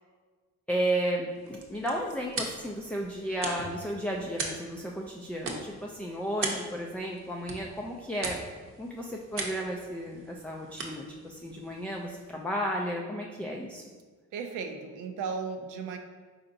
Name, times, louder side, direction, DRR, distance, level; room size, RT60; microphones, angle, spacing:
voice 1, 0.7-8.4 8.8-13.8, equal, 5° left, -1 dB, 0.3 m, -33 dB
sound 1, 1.3-12.5, right 3 dB, 45° right, 0.7 m, -40 dB
voice 2, 14.3-16.0, right 5 dB, 85° right, 5 dB, 0.5 m, -35 dB
4.4 x 3.8 x 2.6 m, 1.4 s
cardioid pair, 90°, 30 cm